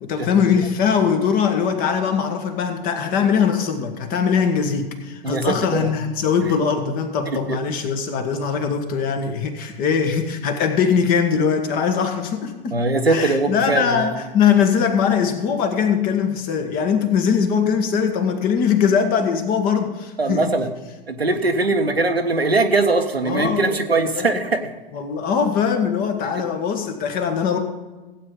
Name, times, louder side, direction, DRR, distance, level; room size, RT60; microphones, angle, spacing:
voice 1, 0.0-12.7 13.1-20.4 23.2-24.5 24.9-27.6, left 6 dB, 30° left, 6 dB, 1.5 m, -21 dB
voice 2, 5.2-5.9 7.5-7.6 12.7-14.2 20.2-20.7 21.1-24.7, right 3 dB, 85° right, 6 dB, 1.2 m, -21 dB
15.5 x 8.7 x 3.8 m, 1.2 s
figure-of-eight pair, 105°, 30 cm